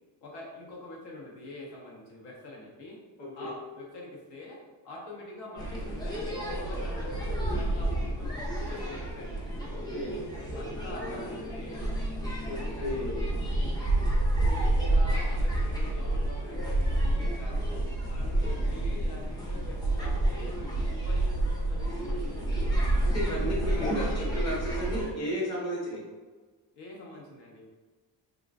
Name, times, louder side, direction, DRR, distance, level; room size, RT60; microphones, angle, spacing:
voice 1, 0.2-3.0 3.3-9.4 10.5-11.9 12.3-13.8 14.4-17.7 18.1-20.6 21.0-22.7 23.2-24.1 26.7-27.7, left 2 dB, 75° left, -2 dB, 1.0 m, -45 dB
voice 2, 3.2-3.5 9.7-10.2 10.8-11.2 12.5-13.2 18.1-18.6 23.0-26.0, equal, 40° left, -5 dB, 0.9 m, -34 dB
sound 1, 5.6-25.1, right 1 dB, 10° left, 0.3 m, -29 dB
3.6 x 2.5 x 2.5 m, 1.3 s
cardioid pair, 170°, 41 cm